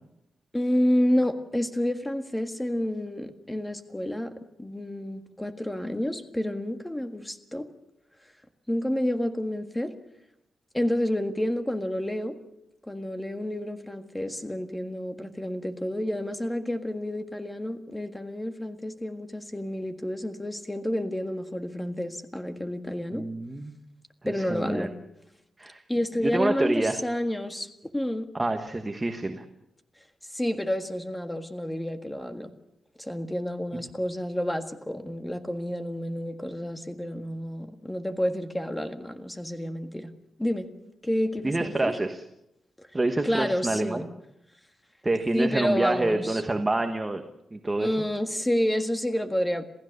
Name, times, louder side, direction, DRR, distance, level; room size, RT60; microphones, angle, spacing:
voice 1, 0.5-7.7 8.7-9.9 10.7-12.4 12.9-23.2 24.3-24.9 25.9-27.7 27.9-28.3 30.3-32.5 33.0-40.1 40.4-40.7 41.0-42.0 42.8-42.9 43.2-44.1 45.3-46.4 47.8-49.6, left 1 dB, 10° left, 7 dB, 1.7 m, -29 dB
voice 2, 23.1-23.8 24.2-24.9 25.6-25.8 26.2-27.0 28.4-29.4 41.4-42.2 42.9-44.1 45.0-47.2 47.5-47.9, right 2 dB, 15° right, 6 dB, 1.3 m, -27 dB
27.5 x 16.0 x 6.6 m, 0.86 s
wide cardioid pair, 145°, 0 cm